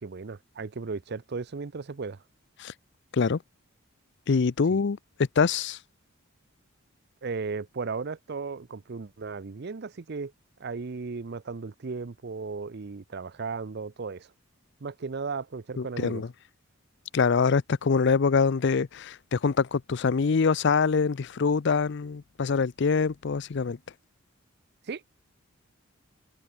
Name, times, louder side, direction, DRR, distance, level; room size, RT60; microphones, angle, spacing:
voice 1, 0.0-2.2 4.7-4.8 7.2-10.3 10.6-14.3 14.8-16.2 24.9-25.2, right 4 dB, 50° right, 0.6 m, -36 dB
voice 2, 4.3-5.0 5.4-5.8 15.8-16.3 17.1-23.8, left 5 dB, 55° left, 0.5 m, -24 dB
head